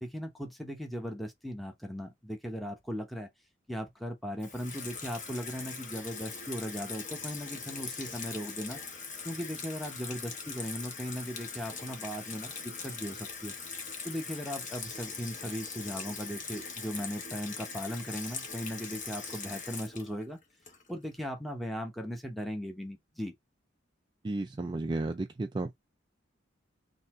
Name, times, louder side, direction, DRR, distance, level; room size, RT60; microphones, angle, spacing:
voice 1, 0.0-3.3 3.7-8.8 9.2-13.5 14.0-20.4 20.9-23.3, equal, ahead, 0.9 m, -38 dB
Water tap faucet / Sink (filling or washing), 4.4-21.1, left 5 dB, 40° left, 1.0 m, -41 dB
voice 2, 24.2-25.7, right 2 dB, 25° right, 0.3 m, -33 dB
4.1 x 2.8 x 3.6 m
head